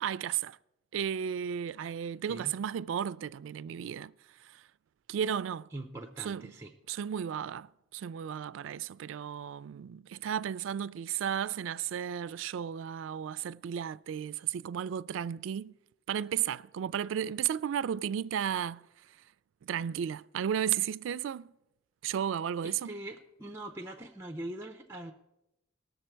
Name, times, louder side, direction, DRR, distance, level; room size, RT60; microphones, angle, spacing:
voice 1, 0.0-0.6 0.9-4.1 4.5-4.6 5.1-5.7 6.2-6.5 6.9-15.7 16.1-18.8 19.6-21.5 22.0-22.9, right 9 dB, 80° right, 0.3 m, -34 dB
voice 2, 5.7-6.7 22.6-25.1, right 1 dB, 15° right, 0.5 m, -42 dB
18.5 x 6.7 x 4.5 m
head